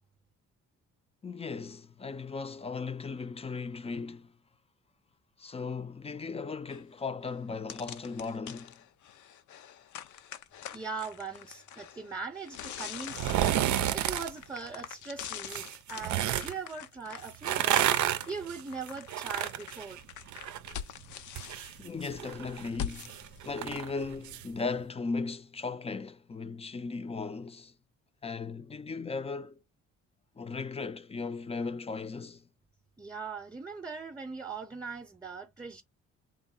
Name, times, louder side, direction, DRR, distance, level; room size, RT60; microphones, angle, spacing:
voice 1, 1.2-4.3 5.4-8.8 21.8-23.2 23.4-27.7 28.2-29.6 30.4-32.5, left 4 dB, 20° left, 0.5 m, -37 dB
sound 1, 6.7-6.8 7.3-7.4 7.7-24.5, left 9 dB, 75° left, 0.6 m, -44 dB
voice 2, 10.7-17.9 18.3-20.0 33.0-35.8, right 4 dB, 15° right, 0.7 m, -40 dB
sound 2, 13.1-14.3 15.5-16.5 17.3-20.7 21.0-24.5 24.8-24.9, right 12 dB, 70° right, 0.5 m, -30 dB
3.7 x 2.0 x 4.0 m
cardioid pair, 90°, 30 cm